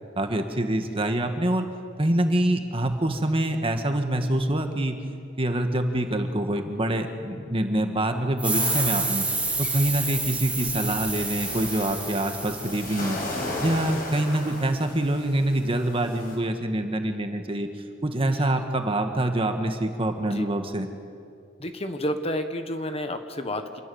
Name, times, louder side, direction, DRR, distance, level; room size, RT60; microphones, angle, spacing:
voice 1, 0.1-1.6 2.0-5.0 5.4-9.2 9.6-13.2 13.6-17.7 18.0-20.9, right 1 dB, 30° right, 6 dB, 1.7 m, -25 dB
sound 1, 8.4-13.7, right 3 dB, 5° right, 2.3 m, -29 dB
sound 2, 8.5-16.4, left 2 dB, 50° left, 6.3 m, -37 dB
voice 2, 21.6-23.8, left 1 dB, 30° left, 7 dB, 1.4 m, -30 dB
27.0 x 20.5 x 7.2 m, 2.4 s
head